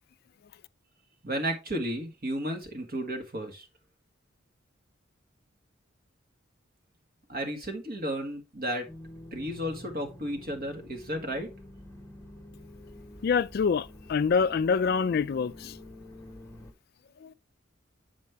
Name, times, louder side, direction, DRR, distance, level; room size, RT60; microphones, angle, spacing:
voice 1, 1.2-3.7 7.3-8.9 9.3-11.5, equal, 45° right, 1.8 m, -33 dB
sound 1, 8.9-16.7, left 1 dB, 15° left, 1.3 m, -48 dB
voice 2, 13.2-15.8 17.2-17.3, left 5 dB, 50° left, 0.3 m, -26 dB
7.4 x 5.3 x 3.4 m
head